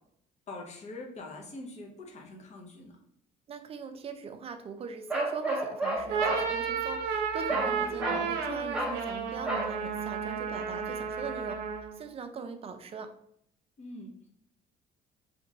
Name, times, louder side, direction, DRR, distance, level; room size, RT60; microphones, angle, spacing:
voice 1, 0.5-3.0 7.5-8.4 10.6-10.9 13.8-14.3, left 2 dB, 40° left, 0 dB, 0.9 m, -44 dB
voice 2, 3.5-13.1, right 5 dB, 35° right, 8 dB, 0.5 m, -41 dB
Bark, 5.1-6.5 7.5-7.7 8.0-8.3 8.7-9.0 9.5-9.7, right 2 dB, 5° right, 0.8 m, -31 dB
sound 1, 5.9-12.0, right 6 dB, 85° right, 0.6 m, -32 dB
3.0 x 2.5 x 3.9 m, 0.72 s
cardioid pair, 110°, 17 cm